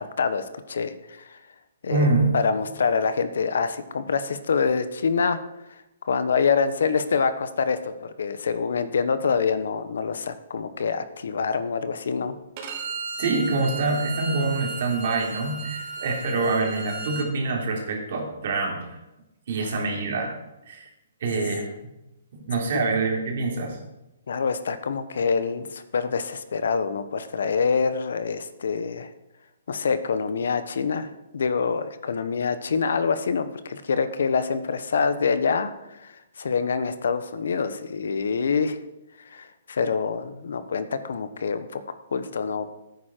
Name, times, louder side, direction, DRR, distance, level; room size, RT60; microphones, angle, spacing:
voice 1, 0.0-1.4 1.8-5.4 6.0-12.3 24.3-29.1 29.7-31.1 31.3-38.8 39.2-41.8 42.1-42.7, left 5 dB, 75° left, 12 dB, 1.0 m, -26 dB
voice 2, 1.9-2.3 13.2-19.0 19.5-20.3 20.7-20.9 21.2-21.7 22.3-23.8, right 3 dB, 55° right, 1 dB, 3.3 m, -25 dB
Bowed string instrument, 12.6-17.3, right 4 dB, 35° right, 2.1 m, -34 dB
12.5 x 9.4 x 4.5 m, 0.94 s
hypercardioid pair, 160°, 0 cm